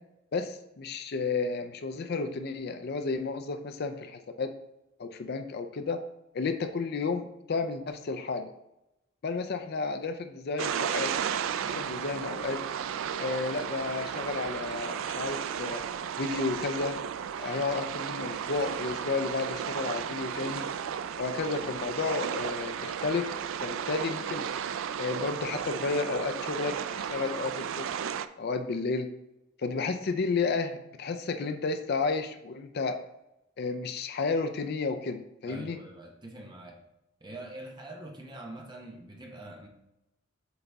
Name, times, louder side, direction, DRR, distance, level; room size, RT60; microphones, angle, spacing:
voice 1, 0.3-4.5 5.0-6.0 6.3-8.5 9.2-11.2 11.6-12.6 13.2-15.8 16.2-17.0 17.4-20.7 21.2-23.3 23.6-24.5 25.0-28.0 28.4-29.1 29.6-33.0 33.6-35.8, left 4 dB, 50° left, 8 dB, 0.4 m, -32 dB
sound 1, 10.6-28.3, right 8 dB, 70° right, 0.3 m, -34 dB
voice 2, 35.4-36.8 37.2-39.7, right 1 dB, 20° right, 0 dB, 1.0 m, -44 dB
7.9 x 3.9 x 3.5 m, 0.90 s
head